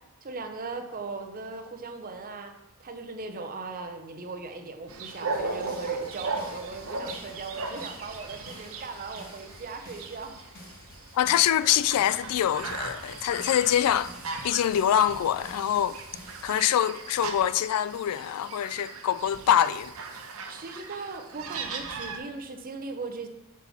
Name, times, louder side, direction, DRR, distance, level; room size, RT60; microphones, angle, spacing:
voice 1, 0.2-2.5 2.8-10.4 11.6-11.9 19.7-19.8 20.5-23.3, right 4 dB, 40° right, 0.7 m, -39 dB
sound 1, 4.9-22.2, right 4 dB, 70° right, 0.8 m, -38 dB
sound 2, 5.3-16.5, left 1 dB, 45° left, 1.3 m, -50 dB
voice 2, 11.1-14.1 14.4-16.0 16.4-19.9, left 10 dB, 90° left, 0.3 m, -24 dB
6.1 x 4.1 x 5.6 m
head